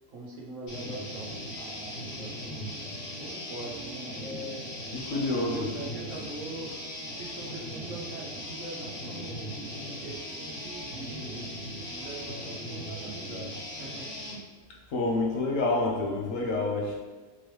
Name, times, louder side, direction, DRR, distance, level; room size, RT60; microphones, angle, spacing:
voice 1, 0.1-2.6 3.2-4.7 5.3-6.7 7.1-11.5 11.9-14.1, right 2 dB, 60° right, -3 dB, 1.1 m, -42 dB
sound 1, 0.7-14.4, equal, 90° left, 2.0 m, -38 dB
voice 2, 4.9-5.7 14.9-17.0, left 2 dB, 65° left, -2 dB, 1.1 m, -28 dB
4.3 x 3.0 x 3.2 m, 1.3 s
omnidirectional pair, 1.5 m